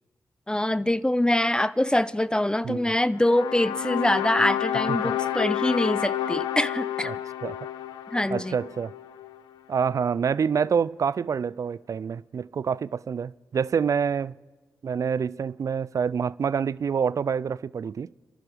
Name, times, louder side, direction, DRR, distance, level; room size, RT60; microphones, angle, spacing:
voice 1, 0.5-7.2 8.1-8.5, left 1 dB, 10° left, 0.5 m, -24 dB
sound 1, 3.2-9.4, left 11 dB, 90° left, 0.4 m, -30 dB
voice 2, 8.3-8.9 9.7-14.3 14.8-18.1, right 6 dB, 50° right, 0.3 m, -27 dB
28.0 x 11.0 x 3.4 m
supercardioid pair, 40°, 7 cm